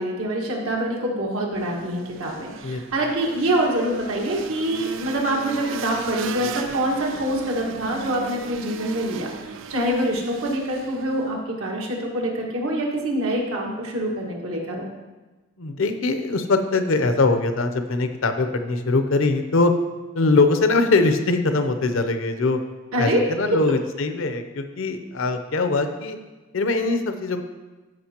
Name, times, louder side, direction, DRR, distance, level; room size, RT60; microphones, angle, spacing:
voice 1, 0.0-9.3 9.7-14.8 22.9-23.2, right 1 dB, 80° right, -2 dB, 1.7 m, -25 dB
sound 1, 1.6-11.4, right 6 dB, 60° right, 0.4 m, -37 dB
voice 2, 15.6-19.7 20.1-22.6 23.0-26.2 26.5-27.4, left 3 dB, 70° left, 8 dB, 0.6 m, -22 dB
13.5 x 5.2 x 2.9 m, 1.2 s
head